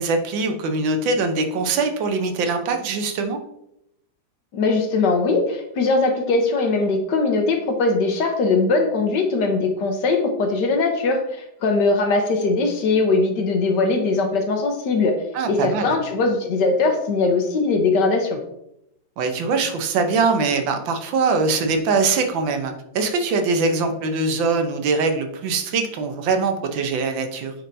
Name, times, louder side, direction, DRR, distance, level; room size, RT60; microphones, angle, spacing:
voice 1, 0.0-3.4 15.3-15.9 19.2-27.5, right 4 dB, 80° right, 6 dB, 1.5 m, -22 dB
voice 2, 4.5-15.1 15.5-18.4, left 3 dB, 65° left, 4 dB, 1.5 m, -20 dB
8.9 x 4.4 x 2.6 m, 0.81 s
omnidirectional pair, 2.1 m